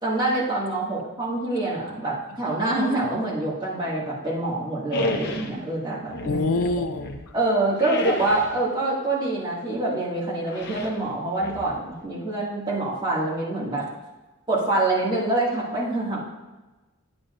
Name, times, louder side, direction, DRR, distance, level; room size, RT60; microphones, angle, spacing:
voice 1, 0.0-6.4 7.3-13.9 14.5-16.2, right 2 dB, 20° right, -7 dB, 2.2 m, -26 dB
sound 1, 4.9-5.6 6.1-7.3 7.8-8.6 10.5-11.0 11.4-12.1, left 1 dB, 50° left, 0.8 m, -30 dB
voice 2, 6.2-7.3, left 2 dB, 75° left, 8 dB, 0.5 m, -26 dB
9.8 x 8.7 x 2.6 m, 1.1 s
head